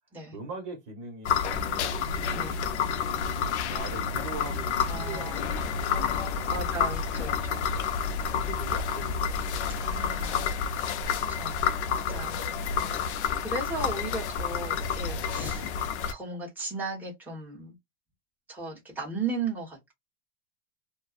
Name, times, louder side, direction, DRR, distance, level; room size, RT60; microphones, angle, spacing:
voice 1, 0.3-2.8 3.7-6.6 8.3-9.8 10.1-10.7 11.2-11.6 12.2-12.6, right 3 dB, 50° right, 1.2 m, -43 dB
sound 1, 1.2-16.1, left 6 dB, 85° left, 0.6 m, -29 dB
voice 2, 4.9-5.4 6.5-7.7 9.8-10.7 11.0-11.6 11.9-12.4 12.7-13.0 13.4-15.8 16.1-17.8 18.5-19.9, right 3 dB, 5° right, 1.1 m, -36 dB
sound 2, 5.2-10.7, left 6 dB, 50° left, 0.6 m, -40 dB
2.5 x 2.1 x 2.4 m
supercardioid pair, 135°, 33 cm